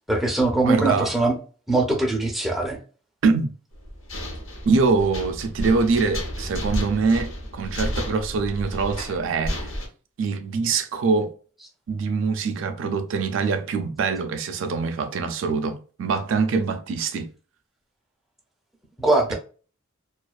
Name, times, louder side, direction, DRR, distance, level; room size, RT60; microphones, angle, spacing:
voice 1, 0.1-1.3 1.7-2.8 19.0-19.3, right 2 dB, ahead, 0.4 m, -21 dB
voice 2, 0.6-1.1 3.2-3.5 4.7-9.7 10.2-11.3 11.9-17.3 19.3-19.4, right 4 dB, 65° right, 0.3 m, -24 dB
sound 1, 3.7-9.9, equal, 70° left, 0.8 m, -32 dB
2.4 x 2.3 x 2.3 m
head